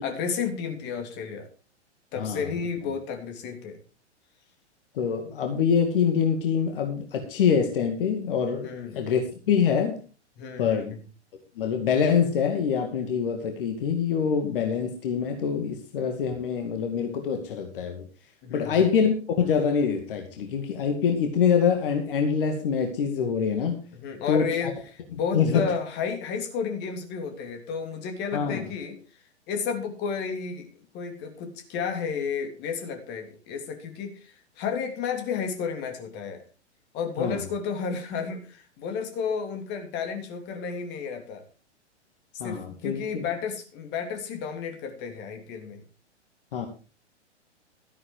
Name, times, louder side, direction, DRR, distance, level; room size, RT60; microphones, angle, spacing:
voice 1, 0.0-1.5 2.1-3.8 8.6-9.0 10.4-11.0 18.4-18.9 23.9-24.7 25.1-29.0 29.5-30.7 30.9-36.4 36.9-41.4 42.4-45.8, left 6 dB, 30° left, 5 dB, 3.1 m, -32 dB
voice 2, 2.2-2.5 4.9-10.0 10.6-10.9 11.6-18.0 18.5-23.8 24.3-24.5 25.1-25.6 28.3-28.6 37.2-37.4 42.4-43.2 46.5-46.7, left 7 dB, 50° left, 4 dB, 2.2 m, -25 dB
13.5 x 11.0 x 4.6 m, 0.35 s
figure-of-eight pair, 110°, 35 cm